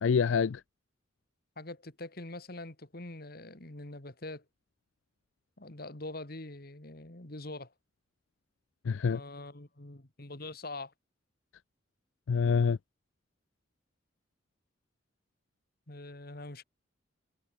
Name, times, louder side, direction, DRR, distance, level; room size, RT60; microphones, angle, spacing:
voice 1, 0.0-0.6 8.9-9.2 12.3-12.8, left 6 dB, 85° left, 0.4 m, -26 dB
voice 2, 1.6-4.4 5.6-7.7 9.1-10.9 15.9-16.6, left 2 dB, 50° left, 2.4 m, -44 dB
head